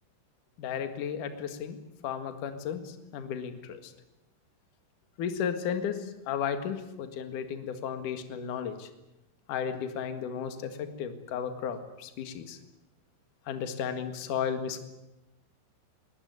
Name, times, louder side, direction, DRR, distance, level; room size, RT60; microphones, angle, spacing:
voice 1, 0.6-1.8 2.0-3.8 5.2-8.9 9.5-12.6 13.5-14.8, left 7 dB, 55° left, 8 dB, 2.8 m, -34 dB
21.5 x 19.5 x 9.6 m, 0.97 s
omnidirectional pair, 5.3 m